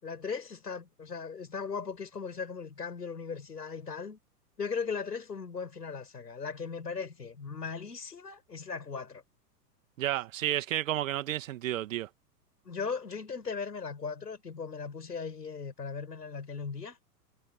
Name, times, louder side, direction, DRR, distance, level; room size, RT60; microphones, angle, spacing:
voice 1, 0.0-4.2 4.6-9.2 12.6-17.0, left 5 dB, 75° left, 7.6 m, -38 dB
voice 2, 10.0-12.1, right 13 dB, 50° right, 2.2 m, -31 dB
figure-of-eight pair, 105°, 49 cm